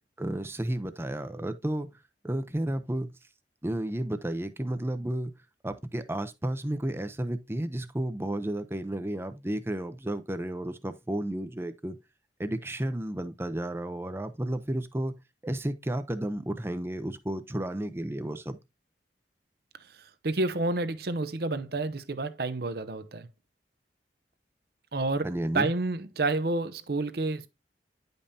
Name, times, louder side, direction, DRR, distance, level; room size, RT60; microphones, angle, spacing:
voice 1, 0.2-1.9 2.2-3.1 3.6-5.3 5.6-12.0 12.4-15.2 15.4-18.6 25.2-25.7, right 1 dB, 15° right, 0.6 m, -32 dB
voice 2, 20.2-23.3 24.9-27.5, right 2 dB, 60° right, 0.7 m, -29 dB
10.0 x 5.3 x 2.7 m
head